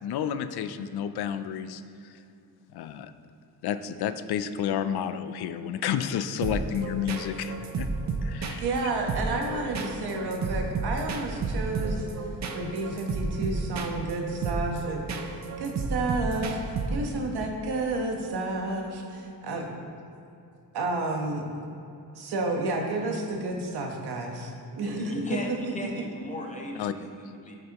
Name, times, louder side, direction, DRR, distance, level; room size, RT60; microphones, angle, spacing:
voice 1, 0.0-2.2 2.7-3.1 3.6-7.9 8.2-8.6 26.8-26.9, left 9 dB, 80° left, 11 dB, 0.5 m, -31 dB
sound 1, 6.4-17.3, right 4 dB, 45° right, 0.6 m, -32 dB
voice 2, 8.6-12.1 12.5-15.0 15.6-19.7 20.7-21.4 22.1-25.6 25.9-26.0, right 2 dB, 85° right, 2 dB, 1.3 m, -31 dB
voice 3, 24.8-27.6, left 1 dB, 20° left, 0 dB, 0.9 m, -36 dB
13.0 x 6.7 x 3.0 m, 2.6 s
wide cardioid pair, 180°, 38 cm